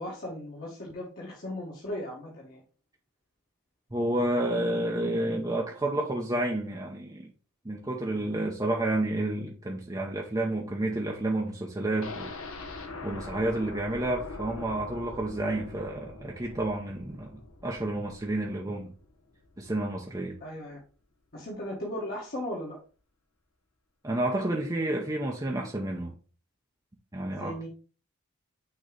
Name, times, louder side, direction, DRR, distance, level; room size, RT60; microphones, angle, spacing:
voice 1, 0.0-2.6 20.4-20.8 21.3-22.8 27.3-27.7, left 1 dB, 45° left, 1.5 m, -37 dB
voice 2, 3.9-7.3 7.6-12.3 12.8-18.9 19.6-20.3 24.0-26.1 27.1-27.5, right 1 dB, 15° right, 0.7 m, -30 dB
sound 1, 12.0-19.9 20.2-20.3 20.7-20.8, left 3 dB, 70° left, 1.1 m, -43 dB
6.5 x 3.0 x 5.0 m
head